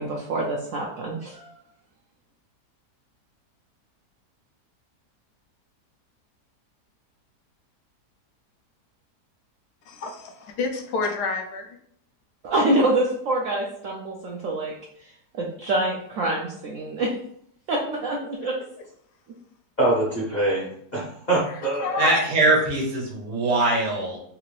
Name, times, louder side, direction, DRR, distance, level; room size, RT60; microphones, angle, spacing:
voice 1, 0.0-1.5 12.4-14.7 15.0-17.1 17.7-18.6, right 1 dB, 65° right, -2 dB, 0.8 m, -26 dB
voice 2, 9.9-11.8 21.5-22.2, left 4 dB, 80° left, 4 dB, 1.2 m, -29 dB
voice 3, 19.8-20.7 20.9-22.1, right 2 dB, 40° left, -6 dB, 0.6 m, -24 dB
voice 4, 22.0-24.2, right 2 dB, 85° right, -2 dB, 1.5 m, -22 dB
3.8 x 2.5 x 3.1 m, 0.68 s
omnidirectional pair, 1.7 m